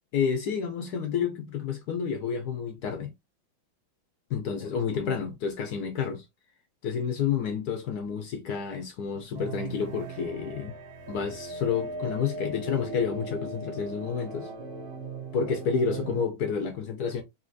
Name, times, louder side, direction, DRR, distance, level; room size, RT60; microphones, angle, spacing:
voice 1, 0.1-3.1 4.3-6.2 6.8-10.7 11.1-14.5 15.3-17.2, left 6 dB, 70° left, 1.0 m, -30 dB
sound 1, 9.4-16.3, right 3 dB, 75° right, 1.8 m, -38 dB
4.0 x 2.8 x 2.6 m
omnidirectional pair, 2.2 m